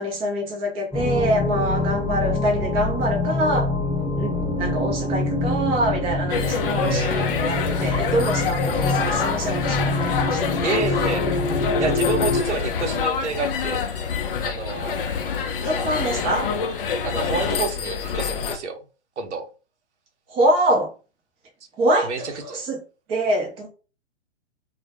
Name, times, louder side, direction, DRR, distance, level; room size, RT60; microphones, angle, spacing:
voice 1, 0.0-3.7 4.2-10.6 15.6-16.5 20.3-20.9 21.8-22.8 23.1-23.7, right 1 dB, 15° right, 0.5 m, -25 dB
sound 1, 0.9-12.4, left 2 dB, ahead, 1.0 m, -25 dB
sound 2, 6.3-18.6, left 6 dB, 55° left, 0.5 m, -26 dB
voice 2, 6.7-7.3 10.6-11.3 11.8-13.8 14.4-14.9 17.0-18.8 19.2-19.5 22.0-22.3, right 4 dB, 80° right, 0.7 m, -28 dB
2.1 x 2.1 x 2.8 m
figure-of-eight pair, 120°, 34 cm